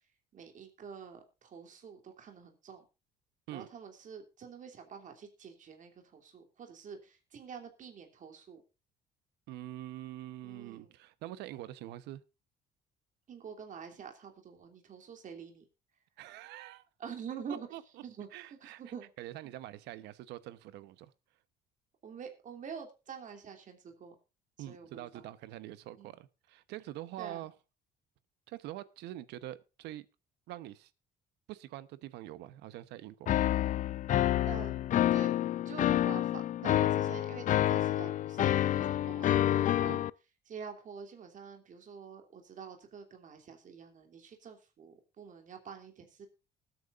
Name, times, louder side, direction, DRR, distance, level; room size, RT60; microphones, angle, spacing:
voice 1, 0.3-2.8 3.5-8.6 10.4-10.9 13.3-15.6 17.0-17.7 18.0-18.3 18.8-19.1 22.0-24.1 24.7-25.2 26.0-26.2 27.2-27.5 34.4-34.8 35.1-35.3 35.6-39.3 39.6-40.1 40.5-46.3, right 6 dB, 50° right, 4 dB, 3.0 m, -47 dB
voice 2, 9.5-12.2 16.2-16.9 17.7-17.8 18.3-18.8 19.2-21.1 24.6-27.5 28.5-30.1 30.5-30.9 31.5-33.3 39.9-40.0, right 14 dB, 85° right, 16 dB, 1.0 m, -45 dB
sound 1, 33.3-40.1, left 12 dB, 50° left, 0.4 m, -28 dB
20.0 x 9.2 x 2.5 m, 0.30 s
cardioid pair, 110°, 17 cm